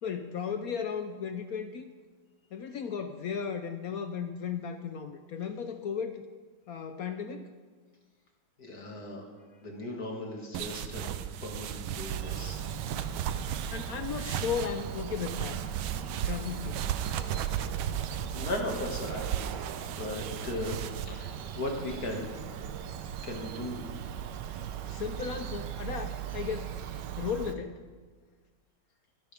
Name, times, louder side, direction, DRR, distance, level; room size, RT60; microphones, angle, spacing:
voice 1, 0.0-1.9 2.5-6.2 6.7-7.5 13.7-15.6 16.2-16.9 24.9-26.7 27.2-27.8, left 7 dB, 70° left, 8 dB, 0.9 m, -35 dB
voice 2, 8.6-9.2 9.6-11.1 11.4-12.6 16.2-16.3 17.0-17.4 17.9-19.4 19.9-20.8 21.1-22.3 23.2-23.8, left 2 dB, 50° left, 0 dB, 2.5 m, -37 dB
sound 1, 10.5-21.1, right 10 dB, 90° right, 1.5 m, -36 dB
Bird vocalization bird call bird song, 12.1-27.5, right 9 dB, 70° right, 1.3 m, -39 dB
23.5 x 11.0 x 3.5 m, 1.5 s
omnidirectional pair, 2.2 m